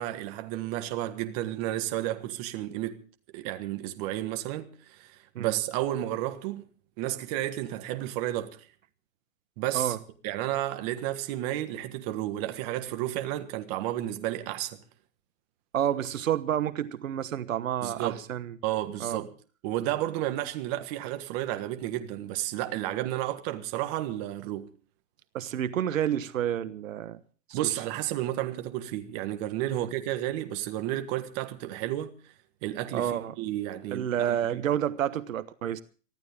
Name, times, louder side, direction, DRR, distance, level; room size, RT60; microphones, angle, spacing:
voice 1, 0.0-3.0 3.3-6.7 7.0-8.7 9.6-10.0 10.2-14.8 17.8-18.2 18.6-19.3 19.6-24.7 27.5-32.3 32.6-34.6, right 14 dB, 30° right, 1.6 m, -32 dB
voice 2, 15.7-18.5 19.0-19.2 25.3-27.2 27.5-27.6 29.7-29.9 32.9-33.3 33.9-35.8, right 10 dB, 70° right, 1.2 m, -29 dB
24.0 x 14.5 x 3.6 m
hypercardioid pair, 155°, 41 cm